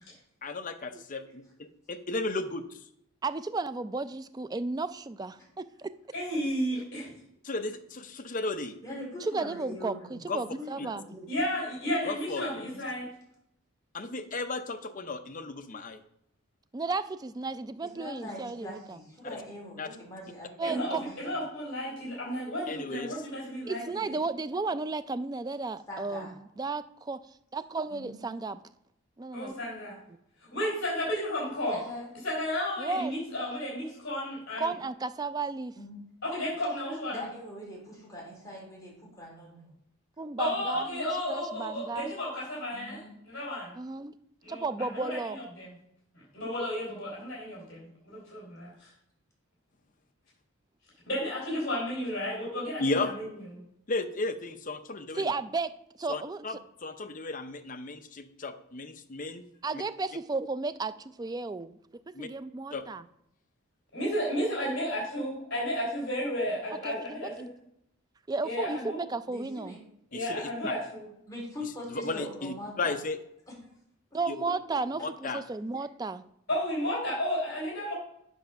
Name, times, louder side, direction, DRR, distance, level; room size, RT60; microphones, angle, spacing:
voice 1, 0.4-2.9 7.4-8.8 10.3-10.4 10.8-10.9 12.0-12.4 13.9-16.0 19.3-19.4 19.8-19.9 22.7-23.2 52.8-53.1 53.9-55.3 56.1-59.4 59.7-59.8 62.1-62.3 62.7-62.8 70.1-70.5 71.6-73.2 74.3-74.4 75.0-75.4, left 3 dB, 40° left, 9 dB, 0.6 m, -34 dB
voice 2, 3.2-5.9 9.2-11.2 15.7-15.8 16.7-19.0 20.6-21.0 23.7-27.2 27.5-28.6 29.2-29.5 32.8-33.1 34.6-35.7 40.2-42.1 43.8-44.1 44.5-45.4 55.1-55.7 56.0-56.5 59.6-61.8 62.2-63.0 66.8-67.3 68.3-69.8 74.1-76.2, right 3 dB, 20° right, 12 dB, 0.3 m, -34 dB
voice 3, 6.1-7.1 11.3-13.1 20.6-24.1 29.3-30.0 30.4-31.8 32.2-34.7 36.2-37.3 40.4-43.0 43.2-43.7 44.4-45.7 46.3-48.9 51.1-53.3 63.9-67.4 68.4-69.0 70.1-71.0 76.5-77.9, equal, 55° left, -5 dB, 3.9 m, -33 dB
voice 4, 8.8-10.1 10.7-11.3 12.6-12.7 17.8-21.2 25.9-26.3 27.9-28.3 31.7-32.1 35.7-36.0 37.1-39.6 40.6-40.7 42.7-43.1 69.3-69.8 71.3-73.0, left 1 dB, 15° left, -3 dB, 3.3 m, -42 dB
8.1 x 5.2 x 5.8 m, 0.77 s
head